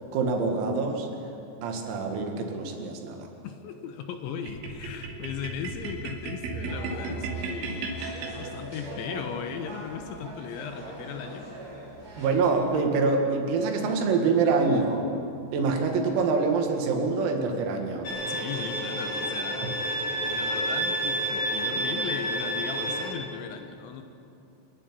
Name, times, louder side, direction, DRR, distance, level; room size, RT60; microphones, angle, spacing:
voice 1, 0.1-1.1 1.6-3.3 12.2-15.1 15.5-18.1 19.6-19.7, right 4 dB, 85° right, 3 dB, 4.8 m, -25 dB
voice 2, 3.4-11.5 18.3-24.0, left 7 dB, 75° left, 7 dB, 3.1 m, -37 dB
sound 1, 4.5-8.9, right 4 dB, 65° right, 4.6 m, -35 dB
sound 2, 6.7-12.6, right 1 dB, 35° right, 7.5 m, -42 dB
Bowed string instrument, 18.0-23.1, right 1 dB, 25° left, 3.9 m, -29 dB
27.5 x 11.0 x 9.7 m, 2.7 s
omnidirectional pair, 6.0 m